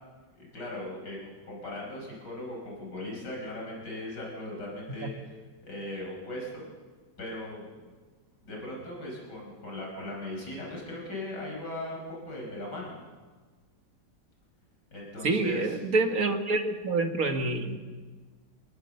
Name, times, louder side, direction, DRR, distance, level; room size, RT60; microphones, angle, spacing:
voice 1, 0.4-6.7 7.2-7.7 8.4-13.1 14.9-15.8, left 1 dB, 70° left, -2 dB, 5.8 m, -38 dB
voice 2, 15.2-17.8, right 3 dB, 50° right, 6 dB, 2.0 m, -27 dB
24.0 x 19.5 x 6.8 m, 1.4 s
omnidirectional pair, 1.9 m